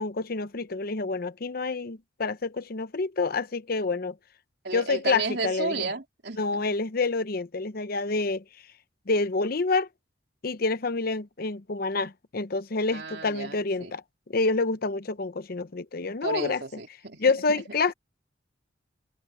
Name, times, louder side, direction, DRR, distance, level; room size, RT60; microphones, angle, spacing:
voice 1, 0.0-4.1 4.7-5.9 6.4-8.4 9.1-9.9 10.4-14.0 14.3-16.6 17.2-17.9, left 3 dB, 55° left, 0.8 m, -28 dB
voice 2, 4.6-6.6 12.9-13.9 16.2-17.3, right 3 dB, 65° right, 3.7 m, -33 dB
open air
head